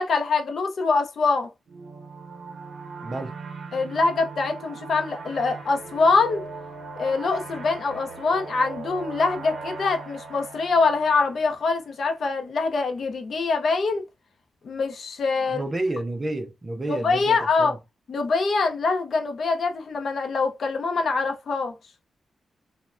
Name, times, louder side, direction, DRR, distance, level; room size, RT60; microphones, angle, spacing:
voice 1, 0.0-1.5 3.7-6.4 7.0-14.0 14.6-15.6 16.9-17.7 18.1-21.7, left 4 dB, 50° left, 0.5 m, -24 dB
sound 1, 1.7-12.0, right 4 dB, 70° right, 0.6 m, -39 dB
voice 2, 3.0-3.3 15.5-17.8, right 2 dB, 20° right, 0.4 m, -30 dB
3.1 x 2.1 x 2.4 m
wide cardioid pair, 180°, 0 cm